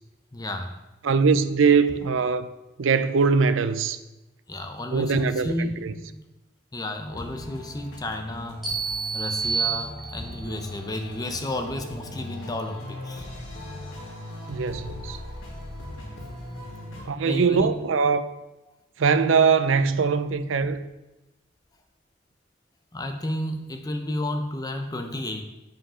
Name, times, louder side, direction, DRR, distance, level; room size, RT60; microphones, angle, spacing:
voice 1, 0.3-0.8 4.5-6.2 6.7-8.6 9.1-13.3 17.3-17.7 18.7-18.8 22.9-25.4, left 1 dB, 20° left, 0.7 m, -32 dB
voice 2, 1.0-2.5 2.8-4.0 4.9-5.9 14.5-15.2 17.1-18.2 19.0-20.8, right 5 dB, 85° right, 0.5 m, -22 dB
sound 1, 7.1-17.0, left 1 dB, 85° left, 2.1 m, -39 dB
sound 2, 8.6-10.5, right 5 dB, ahead, 2.4 m, -29 dB
7.8 x 5.2 x 5.6 m
head